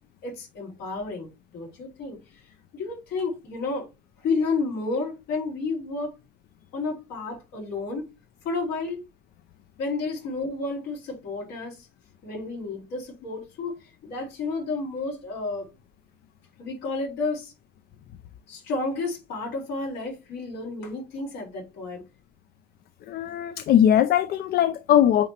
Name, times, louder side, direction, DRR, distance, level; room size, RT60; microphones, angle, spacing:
voice 1, 0.2-2.2 2.7-3.9 4.2-6.1 6.7-8.1 8.4-9.0 9.8-11.9 12.2-15.7 16.6-17.5 18.5-22.0, left 3 dB, 85° left, 4.3 m, -31 dB
voice 2, 23.1-25.3, left 10 dB, 65° left, 0.5 m, -20 dB
8.5 x 3.9 x 2.9 m
cardioid pair, 110°, 17 cm